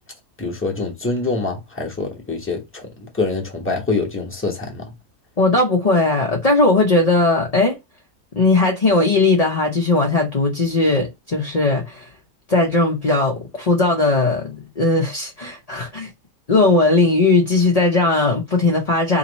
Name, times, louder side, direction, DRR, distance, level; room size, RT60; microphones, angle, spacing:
voice 1, 0.4-4.9, left 3 dB, 10° left, 1.0 m, -25 dB
voice 2, 5.4-7.8 8.4-12.1 12.5-16.1 16.5-19.2, left 3 dB, 35° left, 0.7 m, -18 dB
3.8 x 2.9 x 4.0 m
omnidirectional pair, 1.7 m